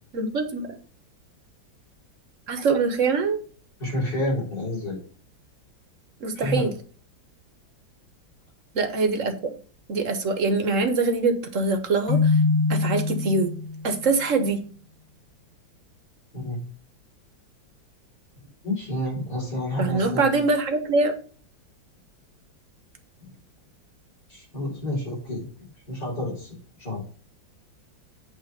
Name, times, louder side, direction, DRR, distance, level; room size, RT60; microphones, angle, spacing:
voice 1, 0.1-0.8 2.5-3.4 6.2-6.7 8.7-9.5 9.9-12.4 12.7-13.5 13.8-14.6 19.8-21.1, right 3 dB, 45° right, 6 dB, 1.4 m, -24 dB
voice 2, 3.8-5.0 6.3-6.7 16.3-16.6 18.6-20.4 24.3-25.4 25.9-27.0, left 1 dB, 60° left, -6 dB, 5.6 m, -29 dB
Keyboard (musical), 12.1-13.9, left 4 dB, 35° left, 0.7 m, -23 dB
9.0 x 3.4 x 6.6 m, 0.40 s
omnidirectional pair, 2.1 m